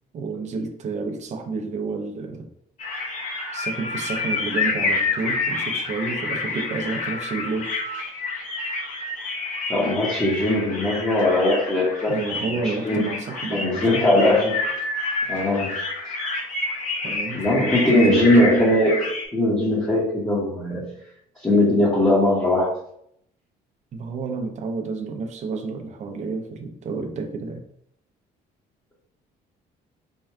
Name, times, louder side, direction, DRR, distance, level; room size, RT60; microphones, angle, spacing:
voice 1, 0.1-2.5 3.5-7.7 12.1-14.1 17.0-18.3 23.9-27.6, right 4 dB, 45° right, 4 dB, 0.6 m, -30 dB
sound 1, 2.8-19.3, left 3 dB, 45° left, 0.9 m, -28 dB
voice 2, 9.7-13.1 13.5-14.6 15.3-15.8 17.3-19.1 19.3-20.9 21.4-22.7, left 1 dB, 15° left, -6 dB, 1.0 m, -20 dB
4.5 x 2.2 x 3.4 m, 0.72 s
cardioid pair, 110°, 17 cm